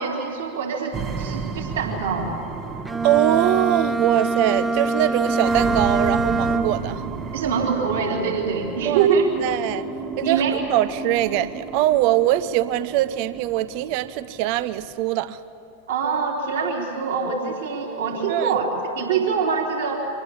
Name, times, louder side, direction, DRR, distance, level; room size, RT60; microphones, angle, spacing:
voice 1, 0.0-2.4 7.3-9.3 10.2-10.6 15.9-20.0, right 5 dB, 60° right, -1 dB, 3.8 m, -24 dB
sound 1, 0.9-14.9, right 5 dB, 25° right, 1.2 m, -33 dB
Bowed string instrument, 2.9-7.0, right 3 dB, 10° right, 0.7 m, -23 dB
voice 2, 3.0-7.0 8.8-9.1 9.4-9.9 10.2-15.4 18.3-18.6, right 13 dB, 45° right, 16 dB, 0.6 m, -22 dB
25.0 x 18.5 x 8.6 m, 2.7 s
figure-of-eight pair, 90°, 0 cm